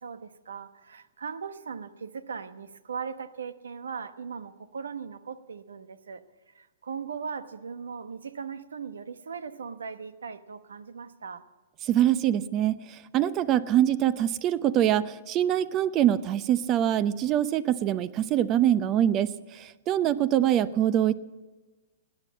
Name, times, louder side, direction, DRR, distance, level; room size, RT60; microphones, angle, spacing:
voice 1, 0.0-11.4 20.1-20.3, right 6 dB, 85° right, 12 dB, 1.1 m, -39 dB
voice 2, 11.8-21.1, right 11 dB, 30° right, 16 dB, 0.7 m, -24 dB
17.0 x 10.0 x 8.4 m, 1.2 s
hypercardioid pair, 130°, 0 cm